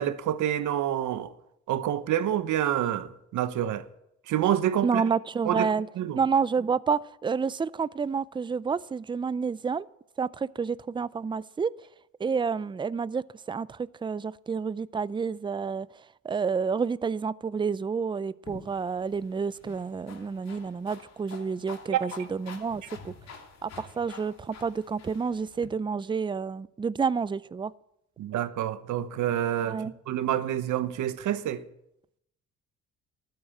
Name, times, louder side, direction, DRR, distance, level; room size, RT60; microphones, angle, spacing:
voice 1, 0.0-1.3 1.7-3.9 4.3-5.0 5.4-6.2 21.9-22.0 28.2-31.6, right 11 dB, 80° right, 1.1 m, -28 dB
voice 2, 4.8-5.9 6.2-9.9 10.2-11.7 12.2-15.9 16.2-23.1 23.6-27.7 29.6-29.9, right 5 dB, 15° right, 0.4 m, -29 dB
sound 1, 18.4-25.7, left 5 dB, 60° left, 2.8 m, -48 dB
13.0 x 9.5 x 8.5 m
cardioid pair, 90°, 30 cm